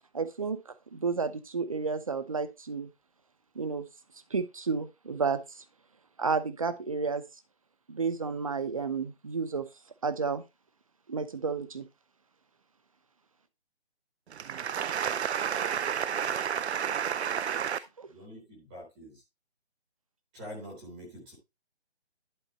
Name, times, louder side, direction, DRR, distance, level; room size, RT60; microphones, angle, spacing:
voice 1, 0.1-2.9 3.5-3.9 4.3-5.6 6.2-7.2 7.9-9.7 10.0-10.4 11.1-11.9 18.0-18.1, right 5 dB, 30° right, 0.7 m, -31 dB
voice 2, 14.3-17.8, right 8 dB, 75° right, 0.5 m, -30 dB
voice 3, 18.1-19.2 20.3-21.3, equal, 5° right, 0.9 m, -45 dB
11.5 x 4.1 x 4.1 m
hypercardioid pair, 170°, 33 cm